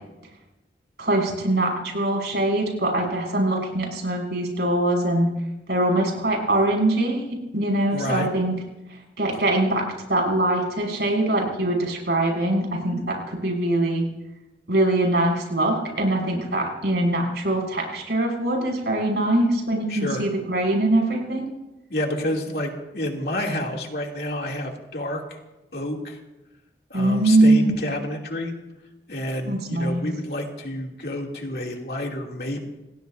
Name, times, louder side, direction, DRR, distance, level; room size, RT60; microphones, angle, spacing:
voice 1, 1.0-5.3 5.7-7.3 7.5-8.5 9.2-9.8 10.1-14.1 14.7-21.5 26.9-27.7 29.5-30.0, right 1 dB, 70° right, 0 dB, 6.3 m, -22 dB
voice 2, 7.9-8.3 19.9-20.3 21.9-25.4 25.7-26.2 26.9-28.5 29.1-32.6, left 1 dB, 60° left, 0 dB, 2.7 m, -29 dB
29.0 x 18.5 x 2.7 m, 1.0 s
head